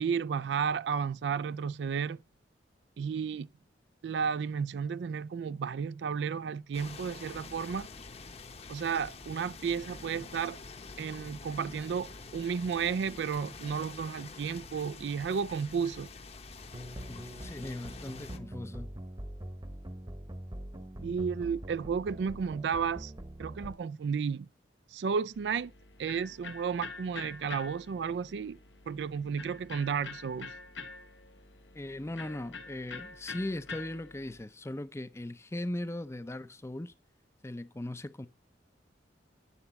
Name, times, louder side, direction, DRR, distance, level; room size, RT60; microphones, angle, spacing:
voice 1, 0.0-2.2 3.0-3.5 4.0-7.9 8.7-10.6 11.0-16.1 21.0-23.1 23.4-24.5 24.9-25.7 26.0-28.6 28.9-30.5, right 6 dB, 70° right, 0.3 m, -33 dB
sound 1, 6.7-18.4, left 4 dB, 35° left, 0.8 m, -47 dB
sound 2, 16.7-23.7, right 1 dB, 25° right, 1.0 m, -43 dB
voice 2, 17.1-18.9 31.7-36.9 37.4-38.3, left 1 dB, 15° left, 0.5 m, -39 dB
Electric guitar, 25.3-34.4, left 4 dB, 90° left, 1.2 m, -46 dB
9.9 x 7.0 x 4.2 m
head